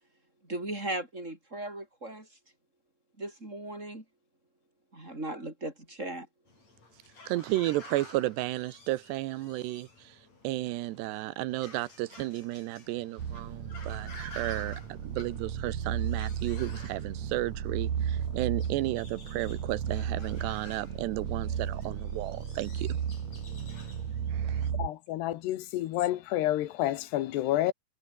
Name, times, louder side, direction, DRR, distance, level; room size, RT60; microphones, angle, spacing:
voice 1, 0.4-2.3 3.2-4.0 4.9-6.3, right 1 dB, 15° right, 6.5 m, -37 dB
sound 1, 6.5-24.7, left 3 dB, 40° left, 8.5 m, -52 dB
voice 2, 7.3-9.9 10.4-22.9 24.3-24.7, right 17 dB, 80° right, 3.1 m, -33 dB
sound 2, 13.2-24.9, right 8 dB, 50° right, 3.0 m, -34 dB
voice 3, 24.8-27.7, left 14 dB, 80° left, 3.3 m, -29 dB
omnidirectional pair, 4.8 m